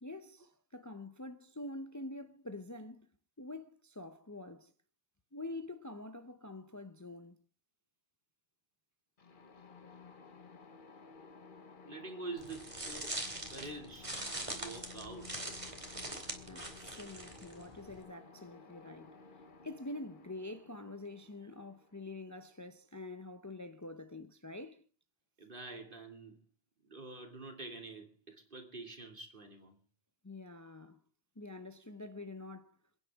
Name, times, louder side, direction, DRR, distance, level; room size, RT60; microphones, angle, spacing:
voice 1, 0.0-3.1 3.4-4.7 5.3-7.4 16.4-19.2 19.6-24.8 30.2-31.0 31.4-32.8, left 2 dB, 20° left, 0.7 m, -46 dB
sound 1, 9.2-22.9, left 4 dB, 55° left, 1.4 m, -56 dB
voice 2, 11.9-13.2 13.5-14.2 14.5-15.7 25.4-26.4 26.8-29.7, right 3 dB, 55° right, 2.9 m, -47 dB
sound 2, 12.4-18.0, right 1 dB, 30° right, 2.6 m, -42 dB
28.5 x 9.7 x 3.6 m
omnidirectional pair, 1.1 m